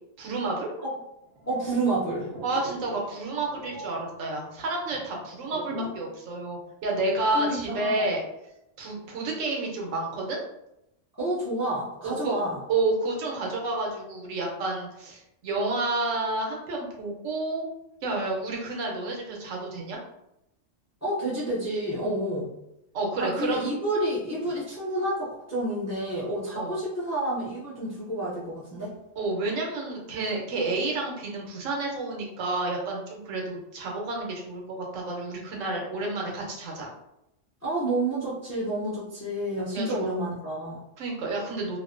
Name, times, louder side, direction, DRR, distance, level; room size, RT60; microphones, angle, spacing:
voice 1, 0.2-0.7 2.4-8.2 8.8-10.4 12.0-12.4 12.7-17.6 18.0-20.0 22.9-23.7 26.6-26.7 29.2-36.9 39.7-40.1 41.0-41.8, right 2 dB, 90° right, -1 dB, 1.0 m, -30 dB
sound 1, 1.2-6.1 6.4-6.6, equal, 65° right, 0.8 m, -41 dB
voice 2, 1.5-2.3 7.3-8.1 11.2-12.6 21.0-22.5 23.2-29.0 37.6-40.8, right 1 dB, 25° left, -7 dB, 0.3 m, -29 dB
2.5 x 2.1 x 2.4 m, 0.85 s
omnidirectional pair, 1.3 m